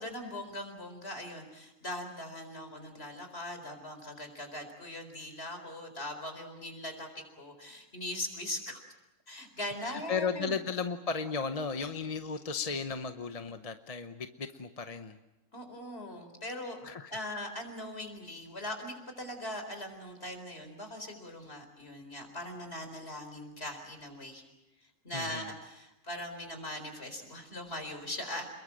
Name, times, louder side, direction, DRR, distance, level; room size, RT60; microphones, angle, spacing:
voice 1, 0.0-8.8 9.3-10.5 15.5-16.8 17.1-24.4 25.0-28.5, left 1 dB, 50° left, 6 dB, 4.6 m, -40 dB
voice 2, 9.8-15.2 16.8-17.1 25.1-25.5, left 5 dB, 30° left, 8 dB, 0.9 m, -35 dB
28.5 x 22.0 x 7.5 m, 0.95 s
omnidirectional pair, 1.4 m